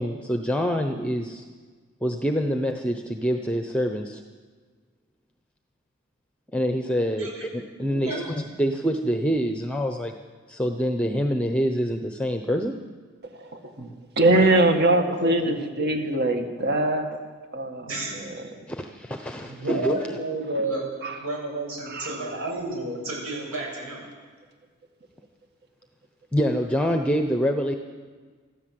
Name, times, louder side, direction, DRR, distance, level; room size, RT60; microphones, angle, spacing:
voice 1, 0.0-1.4 2.0-4.2 6.5-7.3 7.5-8.3 8.6-10.1 10.5-12.7 18.7-20.1 26.3-27.7, equal, 5° left, 5 dB, 0.9 m, -26 dB
voice 2, 7.8-8.6 14.2-15.6 17.8-18.2 19.4-20.8 21.2-24.1, right 2 dB, 80° right, -1 dB, 7.7 m, -32 dB
voice 3, 14.2-17.2 17.5-17.9, right 2 dB, 50° right, 5 dB, 2.0 m, -21 dB
25.0 x 14.0 x 7.7 m, 1.5 s
head